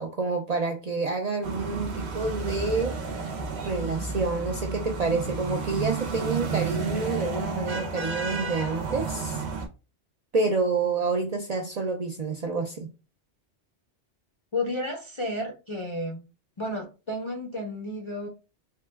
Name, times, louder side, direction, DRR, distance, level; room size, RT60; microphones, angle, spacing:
voice 1, 0.0-3.0 3.6-9.4 10.3-12.9, right 3 dB, 50° right, 0.5 m, -28 dB
sound 1, 1.4-9.7, right 4 dB, 70° right, 1.0 m, -32 dB
voice 2, 14.5-16.2 16.6-18.3, left 1 dB, 40° left, 0.4 m, -32 dB
3.7 x 2.2 x 3.3 m
omnidirectional pair, 1.2 m